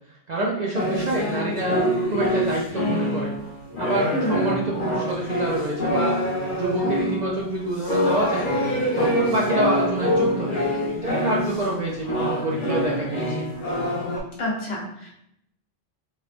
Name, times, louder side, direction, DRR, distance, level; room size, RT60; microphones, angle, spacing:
voice 1, 0.3-3.3 3.8-6.1 6.5-8.5 9.0-13.4, right 1 dB, 60° right, -4 dB, 0.4 m, -27 dB
sound 1, 0.7-11.8 12.0-14.2, equal, 55° left, 0.7 m, -25 dB
voice 2, 14.4-15.1, equal, 85° left, -2 dB, 1.1 m, -27 dB
3.1 x 2.1 x 2.4 m, 0.76 s
omnidirectional pair, 1.2 m